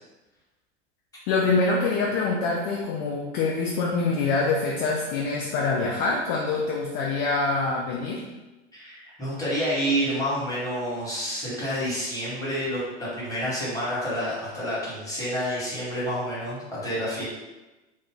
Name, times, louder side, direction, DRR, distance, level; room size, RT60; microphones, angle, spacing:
voice 1, 1.3-8.2, left 3 dB, 40° left, -3 dB, 0.4 m, -25 dB
voice 2, 8.7-17.2, equal, 10° left, -9 dB, 1.3 m, -29 dB
2.4 x 2.0 x 3.5 m, 1.1 s
figure-of-eight pair, 80°, 33 cm